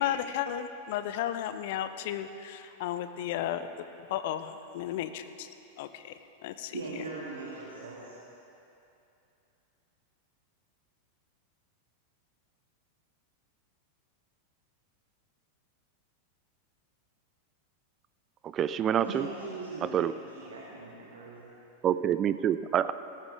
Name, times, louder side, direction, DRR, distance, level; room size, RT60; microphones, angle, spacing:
voice 1, 0.0-3.7 4.1-5.5 5.8-6.1 6.4-6.8, left 11 dB, 50° left, 11 dB, 0.6 m, -33 dB
voice 2, 6.7-8.2 19.0-21.5, right 3 dB, 65° right, -6 dB, 2.0 m, -40 dB
voice 3, 18.5-19.3 19.9-20.1 21.8-22.9, right 10 dB, 30° right, 14 dB, 0.4 m, -26 dB
17.5 x 14.5 x 3.5 m, 2.7 s
figure-of-eight pair, 90°, 0 cm